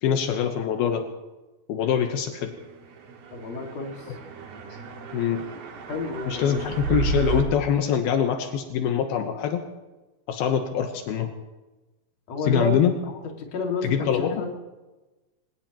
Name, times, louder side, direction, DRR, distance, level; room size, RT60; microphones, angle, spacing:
voice 1, 0.0-1.0 1.7-2.5 5.1-5.4 6.3-9.6 10.3-11.3 12.4-12.9 13.8-14.4, left 8 dB, 80° left, 5 dB, 2.9 m, -24 dB
sound 1, 3.0-7.4, right 5 dB, 85° right, 3.9 m, -32 dB
voice 2, 3.3-4.1 5.9-6.7 12.3-12.8 13.4-14.5, left 3 dB, 50° left, 1 dB, 3.2 m, -30 dB
26.0 x 18.0 x 3.1 m, 1.1 s
omnidirectional pair, 4.4 m